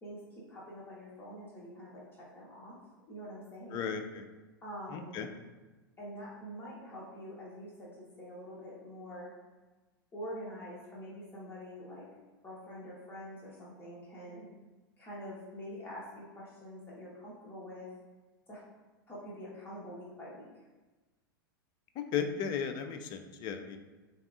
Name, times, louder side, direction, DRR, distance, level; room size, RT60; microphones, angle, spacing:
voice 1, 0.0-2.8 3.1-3.9 4.6-5.2 6.0-9.3 10.1-12.1 12.4-14.5 15.0-17.9 18.5-18.6 19.1-20.6, equal, 20° left, -6 dB, 1.1 m, -45 dB
voice 2, 3.7-4.2 4.9-5.3 22.1-23.8, left 7 dB, 35° left, 7 dB, 0.4 m, -35 dB
6.8 x 2.4 x 2.4 m, 1.2 s
figure-of-eight pair, 90°, 12 cm